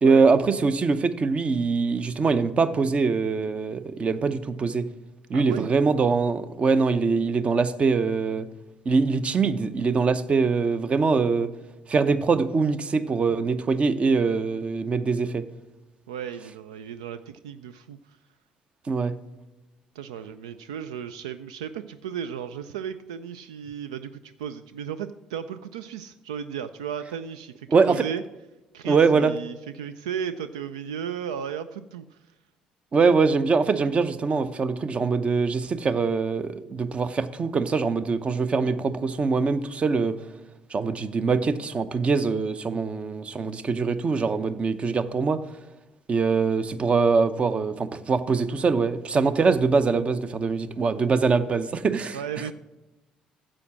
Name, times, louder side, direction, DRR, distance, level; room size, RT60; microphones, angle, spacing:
voice 1, 0.0-4.9 5.3-8.5 8.9-11.5 11.9-15.4 18.9-19.1 27.7-28.0 28.8-29.3 32.9-40.1 40.7-45.4 46.1-52.2, right 4 dB, 35° right, 12 dB, 0.7 m, -23 dB
voice 2, 5.3-5.7 16.1-18.2 20.0-28.2 28.7-32.2 52.1-52.5, right 8 dB, 80° right, 12 dB, 0.3 m, -35 dB
9.8 x 7.4 x 6.0 m, 1.1 s
hypercardioid pair, 50°, 3 cm